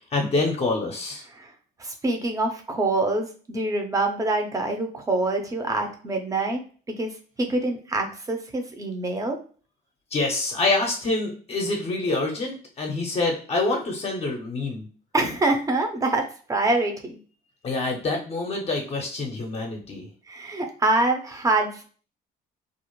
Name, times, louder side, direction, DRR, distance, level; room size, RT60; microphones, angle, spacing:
voice 1, 0.1-1.2 10.1-14.9 17.6-20.1, left 2 dB, 35° left, 0 dB, 0.6 m, -26 dB
voice 2, 1.8-6.6 6.9-9.4 15.1-17.2 20.3-21.8, right 2 dB, 20° right, 3 dB, 0.6 m, -25 dB
2.4 x 2.0 x 3.0 m, 0.41 s
cardioid pair, 110°, 17 cm